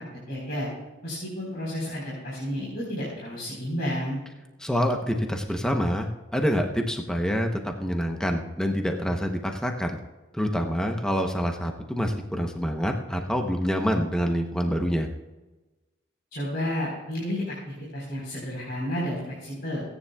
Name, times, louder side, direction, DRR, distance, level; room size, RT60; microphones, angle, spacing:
voice 1, 0.3-0.7 1.0-4.2 16.3-19.8, equal, 50° left, -6 dB, 4.0 m, -31 dB
voice 2, 4.6-10.0 10.3-15.1, equal, 5° left, 3 dB, 0.7 m, -26 dB
28.5 x 9.9 x 2.3 m, 1.2 s
head